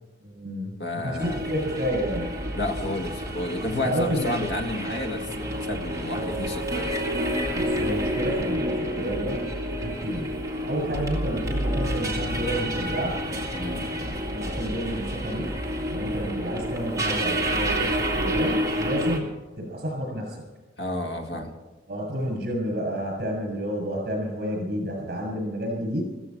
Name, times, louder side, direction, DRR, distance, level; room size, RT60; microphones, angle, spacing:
voice 1, 0.2-2.3 3.7-4.5 6.2-6.4 7.5-9.4 9.8-10.4 10.6-13.2 14.0-15.5 15.9-20.4 21.9-26.1, equal, 55° right, 0 dB, 6.8 m, -30 dB
voice 2, 0.8-1.5 2.5-7.0 13.5-13.9 20.8-21.5, left 1 dB, 65° left, 4 dB, 1.9 m, -31 dB
sound 1, 1.2-19.2, equal, 20° right, 2.2 m, -29 dB
15.0 x 14.5 x 5.9 m, 1.2 s
head